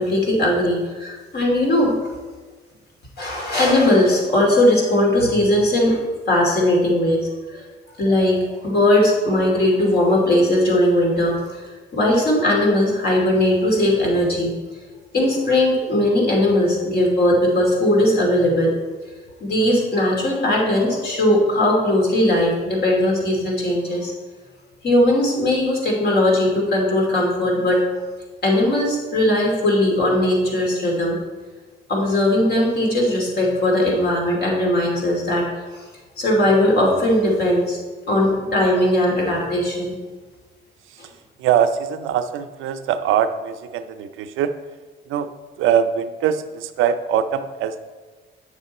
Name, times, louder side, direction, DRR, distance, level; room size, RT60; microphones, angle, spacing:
voice 1, 0.0-2.0 3.2-6.0 6.3-7.6 8.0-11.6 11.9-14.5 15.1-18.7 19.4-24.1 24.8-27.8 28.4-31.2 31.9-35.8 36.2-37.8 38.1-39.9, left 1 dB, 55° left, -2 dB, 2.7 m, -19 dB
voice 2, 41.4-44.6 45.1-45.3 45.6-47.9, right 9 dB, 90° right, 9 dB, 0.6 m, -22 dB
8.6 x 6.6 x 4.2 m, 1.4 s
cardioid pair, 90°, 20 cm